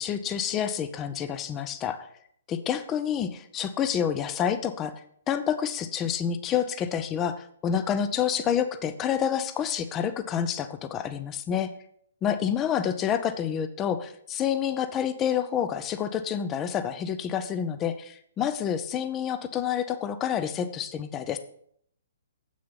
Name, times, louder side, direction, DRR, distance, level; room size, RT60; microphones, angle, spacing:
voice 1, 0.0-2.1 2.5-4.9 5.3-11.7 12.2-21.4, left 8 dB, 20° left, 11 dB, 0.7 m, -28 dB
8.1 x 6.3 x 5.6 m, 0.67 s
figure-of-eight pair, 120°, 0 cm